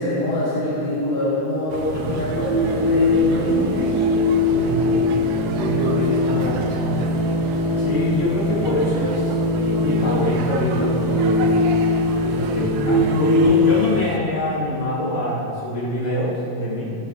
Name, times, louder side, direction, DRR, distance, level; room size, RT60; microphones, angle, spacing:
voice 1, 0.0-3.9, left 1 dB, 60° left, -11 dB, 4.8 m, -24 dB
sound 1, 1.7-14.2, right 3 dB, 80° right, 1.8 m, -32 dB
sound 2, 1.9-13.4, left 1 dB, 45° right, 3.7 m, -21 dB
voice 2, 4.5-5.1 5.6-7.0 7.8-9.4 9.6-11.6 12.2-16.9, left 1 dB, 35° left, -8 dB, 3.3 m, -25 dB
15.0 x 11.0 x 3.3 m, 2.8 s
omnidirectional pair, 4.3 m